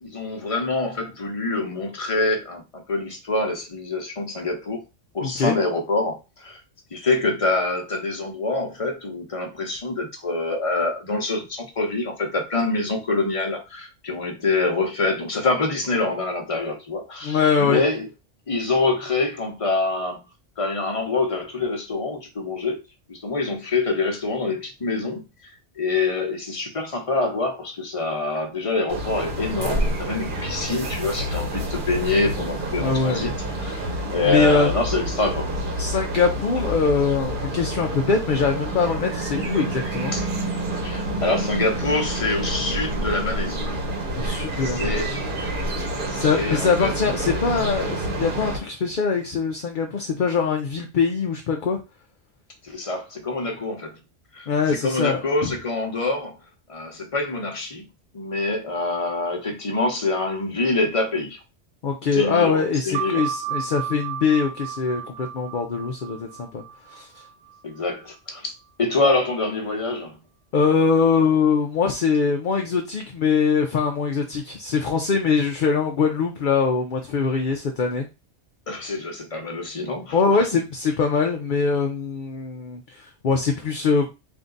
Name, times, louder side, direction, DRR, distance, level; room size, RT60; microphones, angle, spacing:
voice 1, 0.0-4.8 5.1-6.6 6.9-18.1 18.5-20.2 20.6-22.8 23.1-25.2 25.8-33.3 33.6-35.5 40.1-40.2 40.8-43.6 44.7-45.2 46.1-46.9 52.6-53.9 54.3-54.5 54.8-56.4 56.7-57.8 58.1-61.4 62.1-63.2 67.6-68.5 68.8-70.1 78.7-80.2, left 3 dB, 30° left, 0.9 m, -25 dB
voice 2, 5.2-5.6 17.2-17.8 32.8-33.3 33.9-34.7 35.8-40.1 44.2-45.2 46.1-51.8 54.5-55.5 61.8-66.6 66.9-67.1 70.5-78.1 80.1-84.1, left 5 dB, 55° left, 0.7 m, -23 dB
sound 1, 28.9-48.6, right 1 dB, 50° right, 1.0 m, -28 dB
sound 2, 62.9-68.1, right 9 dB, 70° right, 0.8 m, -33 dB
3.7 x 2.6 x 3.8 m
omnidirectional pair, 1.2 m